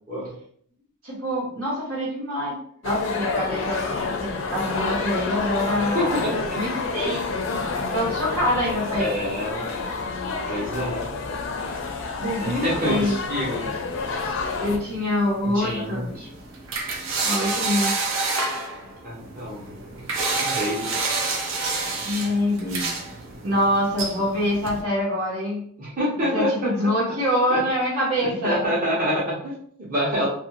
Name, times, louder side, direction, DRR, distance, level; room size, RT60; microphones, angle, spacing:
voice 1, 1.0-2.6 2.8-7.2 7.9-9.1 12.2-13.1 14.6-16.0 17.2-17.9 22.0-22.9 23.4-25.6 26.3-28.6, left 1 dB, 85° right, -5 dB, 1.4 m, -25 dB
sound 1, 2.8-14.8, left 4 dB, 60° left, 0.4 m, -29 dB
voice 2, 5.9-6.3 8.9-9.7 10.5-11.7 12.4-13.7 15.4-16.3 19.0-19.6 20.3-20.9 25.8-26.7 27.5-27.6 28.4-30.3, equal, 40° right, -7 dB, 0.9 m, -27 dB
sound 2, 14.3-24.8, right 3 dB, 60° right, 0.6 m, -29 dB
2.6 x 2.5 x 2.9 m, 0.62 s
head